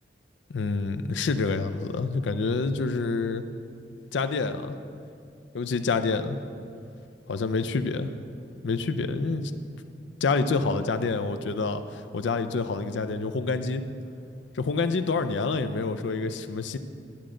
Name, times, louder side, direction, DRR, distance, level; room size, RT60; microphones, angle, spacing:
voice 1, 0.5-3.4 4.1-4.8 5.5-6.4 7.3-8.1 8.6-9.5 10.2-13.8 14.5-16.8, left 4 dB, 85° left, 10 dB, 0.5 m, -27 dB
10.5 x 8.7 x 3.8 m, 2.4 s
head